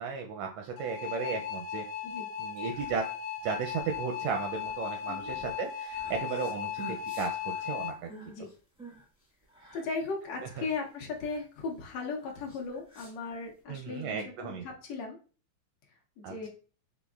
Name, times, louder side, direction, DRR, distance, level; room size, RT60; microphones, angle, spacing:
voice 1, 0.0-1.8 2.4-3.0 3.4-6.8 7.1-8.1 13.7-14.6 16.2-16.5, right 5 dB, 80° right, 3 dB, 1.5 m, -35 dB
sound 1, 0.8-7.9, left 9 dB, 85° left, 1.2 m, -37 dB
sound 2, 2.4-13.6, right 3 dB, 10° right, 0.3 m, -52 dB
voice 2, 9.7-15.2 16.2-16.5, left 4 dB, 70° left, 0 dB, 1.9 m, -37 dB
6.0 x 3.4 x 2.4 m, 0.38 s
omnidirectional pair, 3.3 m